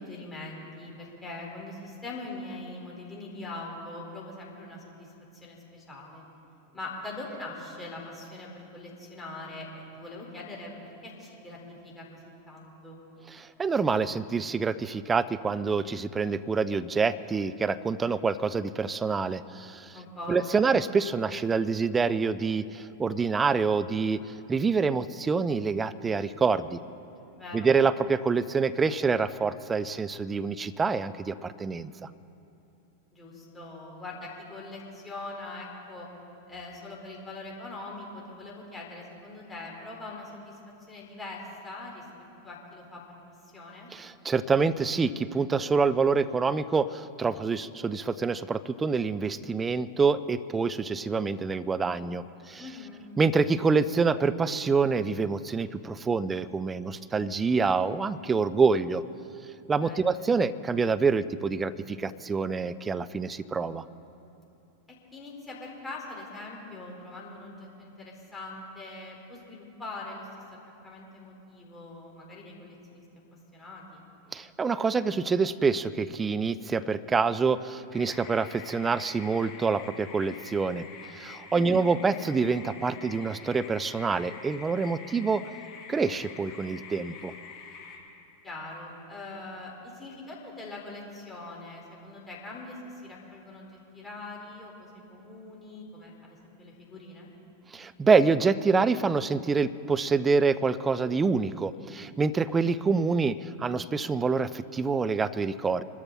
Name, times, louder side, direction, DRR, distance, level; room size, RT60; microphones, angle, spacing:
voice 1, 0.0-6.2 6.7-10.7 11.0-13.0 19.9-20.7 27.3-27.7 33.1-36.1 36.5-40.6 40.9-42.1 42.4-43.0 43.4-43.9 52.6-53.0 59.8-60.1 65.1-70.3 70.8-73.0 73.5-74.0 81.5-81.9 88.4-97.3, left 2 dB, 10° left, -3 dB, 4.9 m, -42 dB
voice 2, 13.3-20.0 20.3-24.2 24.5-26.8 27.5-31.9 43.9-52.6 53.2-59.0 59.7-63.8 74.3-80.8 81.1-85.5 85.9-87.3 97.7-105.8, right 4 dB, 15° right, 15 dB, 0.6 m, -26 dB
sound 1, 77.9-88.0, left 6 dB, 35° left, 2.7 m, -46 dB
25.0 x 13.0 x 4.3 m, 2.8 s
figure-of-eight pair, 90°, 0 cm